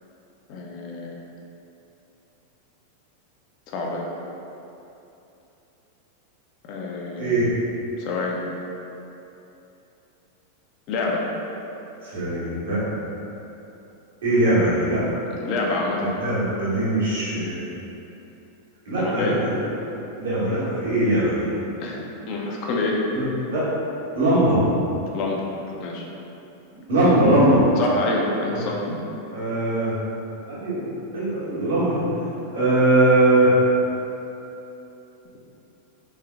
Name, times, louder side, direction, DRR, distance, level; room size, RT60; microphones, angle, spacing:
voice 1, 0.5-1.2 3.7-4.1 6.7-7.4 8.0-8.4 10.9-11.2 15.3-16.1 18.9-19.4 21.8-23.0 25.1-25.4 25.8-26.0 27.8-29.0, left 2 dB, 40° left, -2 dB, 0.6 m, -27 dB
voice 2, 7.2-7.5 12.0-12.8 14.2-15.2 16.0-17.6 18.8-19.9 20.2-21.5 23.1-23.2 23.5-23.7 24.1-24.6 26.9-27.6 28.5-28.6 29.3-29.9 30.5-32.2 32.5-33.6, right 1 dB, 60° right, -10 dB, 1.5 m, -21 dB
3.6 x 3.3 x 3.4 m, 2.9 s
figure-of-eight pair, 90°, 0 cm